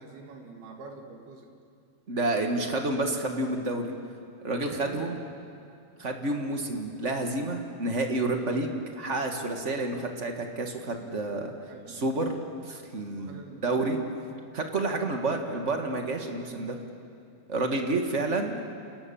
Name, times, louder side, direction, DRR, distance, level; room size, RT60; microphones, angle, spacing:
voice 1, 0.0-1.5 4.7-5.1 11.7-12.0 13.2-13.9 17.7-18.2, right 3 dB, 75° right, 3 dB, 4.4 m, -46 dB
voice 2, 2.1-3.9 4.4-5.2 6.0-11.5 11.9-12.3 12.6-14.0 14.5-16.8 17.5-18.6, right 2 dB, 50° right, 3 dB, 0.8 m, -29 dB
29.5 x 28.0 x 7.2 m, 2.4 s
omnidirectional pair, 4.5 m